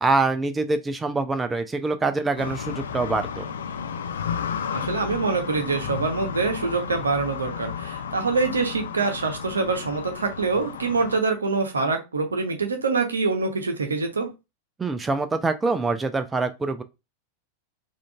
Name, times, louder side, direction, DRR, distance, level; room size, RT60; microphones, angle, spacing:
voice 1, 0.0-3.5 14.8-16.8, right 3 dB, 15° right, 0.3 m, -25 dB
sound 1, 2.4-11.2, left 7 dB, 65° left, 0.6 m, -33 dB
voice 2, 4.7-14.3, right 4 dB, 75° right, 0.7 m, -25 dB
3.6 x 2.4 x 2.3 m
figure-of-eight pair, 90°, 0 cm